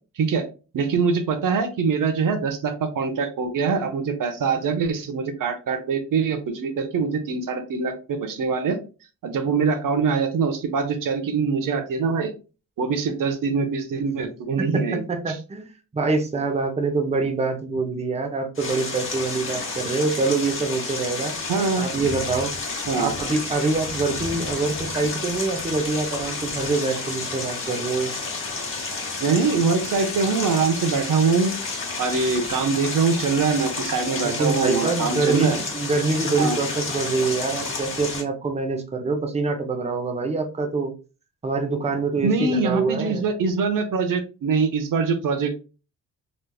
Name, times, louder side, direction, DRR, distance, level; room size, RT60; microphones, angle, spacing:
voice 1, 0.2-0.5 0.7-8.8 9.2-12.3 12.8-15.3 21.5-21.9 22.9-23.1 29.2-31.5 32.0-35.6 36.4-36.6 42.2-45.5, right 5 dB, 70° right, 7 dB, 0.7 m, -23 dB
voice 2, 14.6-21.3 21.8-22.5 23.0-28.1 34.2-40.9 41.4-43.2, right 3 dB, 20° right, 4 dB, 0.6 m, -25 dB
sound 1, 18.6-38.2, left 3 dB, 35° left, 1.1 m, -31 dB
3.3 x 3.1 x 2.3 m, 0.32 s
cardioid pair, 105°, 33 cm